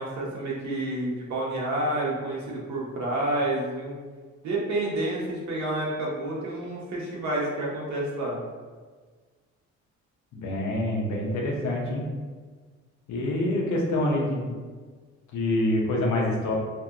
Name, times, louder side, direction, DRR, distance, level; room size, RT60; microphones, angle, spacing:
voice 1, 0.0-4.0 4.4-8.4, right 1 dB, 65° right, -3 dB, 0.8 m, -29 dB
voice 2, 10.3-12.0 13.1-14.5 15.3-16.5, left 1 dB, 70° left, -1 dB, 0.7 m, -26 dB
2.7 x 2.5 x 2.4 m, 1.5 s
cardioid pair, 90°, 30 cm